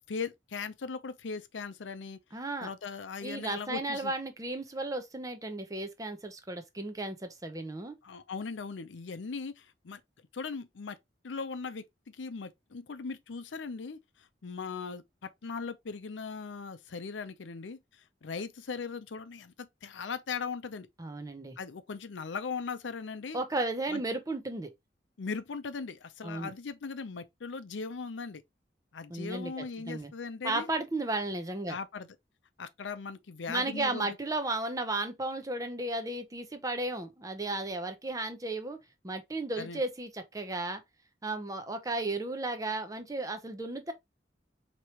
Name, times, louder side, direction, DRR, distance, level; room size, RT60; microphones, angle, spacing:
voice 1, 0.1-2.2 2.6-4.1 8.0-10.0 10.3-11.0 11.2-20.9 21.6-23.4 23.9-24.0 25.2-28.4 28.9-30.7 31.7-32.1 32.6-34.2 39.6-39.8, left 5 dB, 85° left, 0.6 m, -39 dB
voice 2, 2.3-2.7 3.2-8.0 21.0-21.6 23.3-24.7 26.2-26.5 29.1-30.1 30.4-31.8 33.5-38.8 39.0-40.8 41.2-43.9, right 2 dB, 20° right, 0.7 m, -34 dB
4.6 x 3.0 x 2.9 m
head